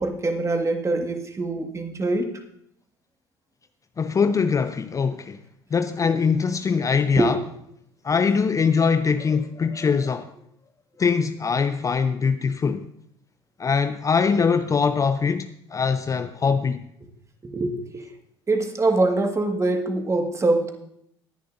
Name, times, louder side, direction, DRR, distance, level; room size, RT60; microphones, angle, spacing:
voice 1, 0.0-2.3 7.2-7.3 17.4-18.0 18.5-20.7, right 2 dB, 20° right, 1.8 m, -24 dB
voice 2, 4.0-5.4 5.7-7.4 8.0-10.3 11.0-12.9 13.6-16.8, left 5 dB, 25° left, 0.5 m, -22 dB
19.5 x 10.0 x 2.6 m
figure-of-eight pair, 65°, 13 cm